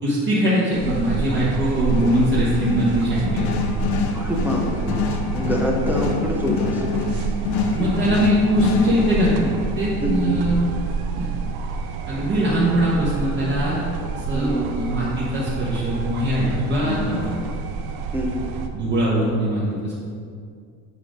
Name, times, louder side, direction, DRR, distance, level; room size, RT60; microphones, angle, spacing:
voice 1, 0.0-3.5 7.7-10.6 11.1-11.3 12.1-13.8 14.1-17.3 18.7-20.0, right 1 dB, 30° right, -7 dB, 1.0 m, -22 dB
sound 1, 0.7-18.7, right 5 dB, 65° right, 0.7 m, -28 dB
sound 2, 1.2-12.0 16.8-17.5, left 5 dB, 80° left, 0.8 m, -27 dB
voice 2, 4.1-4.8 5.3-6.8 10.0-10.4 14.3-14.7 18.1-18.4, equal, 5° right, -2 dB, 0.4 m, -25 dB
8.3 x 3.8 x 4.9 m, 2.3 s
cardioid pair, 165°, 39 cm